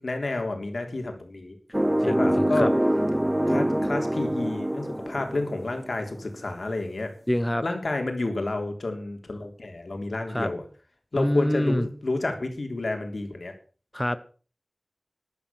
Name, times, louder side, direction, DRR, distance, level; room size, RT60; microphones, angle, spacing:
voice 1, 0.0-1.6 2.1-2.7 3.5-7.1 7.6-10.6 11.1-13.5, left 2 dB, 85° left, 3.5 m, -30 dB
sound 1, 1.7-6.1, right 1 dB, 15° right, 0.6 m, -25 dB
voice 2, 2.0-2.7 7.3-7.6 10.3-10.5 11.1-11.9 13.9-14.2, left 1 dB, 15° left, 1.0 m, -26 dB
12.5 x 12.0 x 6.0 m
wide cardioid pair, 60°, 0 cm